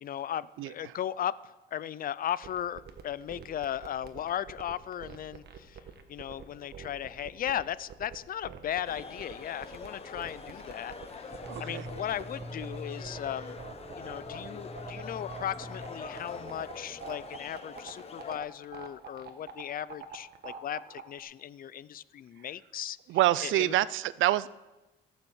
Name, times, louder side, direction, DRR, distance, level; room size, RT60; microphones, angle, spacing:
voice 1, 0.0-5.8 6.1-13.6 14.0-23.0 23.4-23.7, left 10 dB, 45° left, 18 dB, 0.4 m, -37 dB
sound 1, 2.4-21.2, right 7 dB, 55° right, 1.4 m, -45 dB
sound 2, 8.8-18.4, left 4 dB, 30° left, 1.1 m, -45 dB
sound 3, 11.3-17.3, equal, 5° left, 1.2 m, -45 dB
voice 2, 11.5-11.9 23.1-24.5, right 15 dB, 85° right, 19 dB, 0.5 m, -26 dB
15.5 x 7.2 x 7.2 m, 1.1 s
cardioid pair, 135°, 20 cm